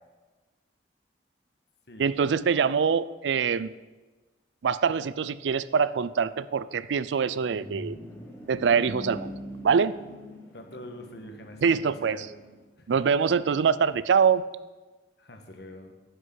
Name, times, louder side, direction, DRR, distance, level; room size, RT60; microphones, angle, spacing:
voice 1, 2.0-3.7 4.6-8.0 8.5-9.3 9.6-10.0 11.6-12.2 12.9-14.4, right 6 dB, 85° right, 17 dB, 0.4 m, -24 dB
sound 1, 7.1-12.6, left 1 dB, 15° left, 2.3 m, -43 dB
voice 2, 10.5-12.3 12.8-13.0 15.2-15.9, left 1 dB, 65° left, 4 dB, 1.4 m, -44 dB
9.6 x 6.4 x 7.7 m, 1.2 s
head